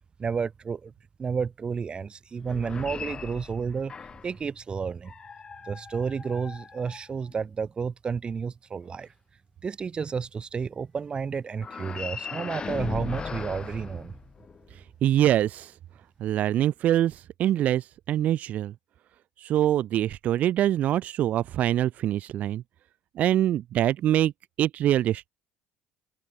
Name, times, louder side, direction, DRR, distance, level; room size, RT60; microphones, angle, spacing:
voice 1, 0.2-0.9 1.2-3.9 4.2-5.1 5.6-9.1 9.6-14.2, right 6 dB, 30° right, 2.3 m, -31 dB
sound 1, 2.4-4.4 5.0-7.5 11.6-14.7, left 5 dB, 30° left, 5.1 m, -38 dB
voice 2, 15.0-15.7 16.2-18.7 19.4-22.6 23.2-24.3 24.6-25.3, right 12 dB, 55° right, 2.0 m, -24 dB
open air
supercardioid pair, 80°, 3 cm